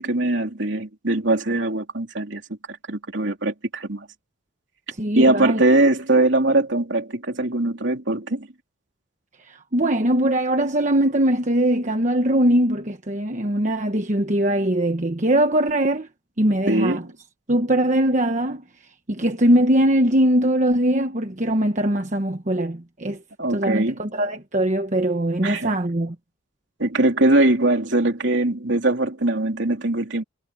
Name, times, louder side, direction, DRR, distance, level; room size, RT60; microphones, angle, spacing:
voice 1, 0.0-2.4 2.7-4.1 5.2-8.5 16.7-17.1 23.4-24.0 25.4-25.7 26.8-30.2, right 2 dB, 65° right, 3.5 m, -21 dB
voice 2, 5.0-5.6 9.4-16.1 16.4-17.0 17.5-18.6 19.1-23.2 23.5-26.1, right 1 dB, 40° right, 1.2 m, -21 dB
head